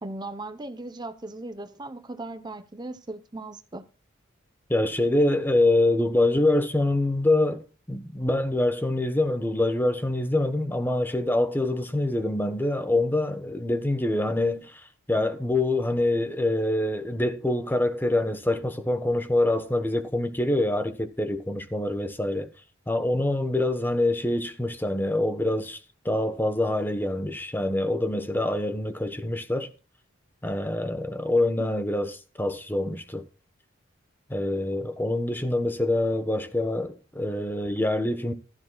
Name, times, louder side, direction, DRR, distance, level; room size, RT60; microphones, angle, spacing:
voice 1, 0.0-3.8 31.6-31.9, right 2 dB, 20° right, 0.7 m, -38 dB
voice 2, 4.7-7.6 7.9-14.7 15.1-22.5 22.9-25.8 26.0-29.7 30.4-32.1 32.4-33.2 34.3-38.3, left 1 dB, 10° left, 1.0 m, -25 dB
15.0 x 12.5 x 2.3 m
head